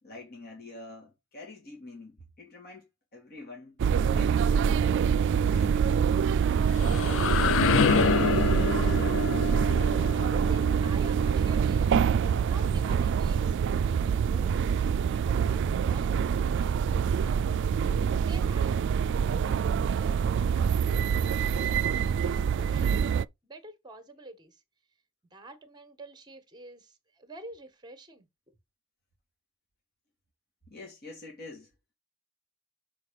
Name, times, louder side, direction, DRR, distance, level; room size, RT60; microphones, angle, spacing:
voice 1, 0.0-2.9 3.1-4.9 5.3-6.3 30.7-31.7, left 2 dB, 50° left, 2.5 m, -46 dB
sound 1, 3.8-23.2, right 7 dB, 60° right, 0.3 m, -25 dB
sound 2, 6.4-12.2, left 6 dB, 65° left, 0.5 m, -28 dB
voice 2, 8.3-9.7 10.1-11.9 12.5-13.6 13.9-14.5 15.2-16.2 16.5-17.5 18.2-18.8 19.3-20.2 20.8-24.6 25.3-28.5, right 2 dB, 20° right, 1.4 m, -48 dB
6.3 x 4.6 x 5.1 m
head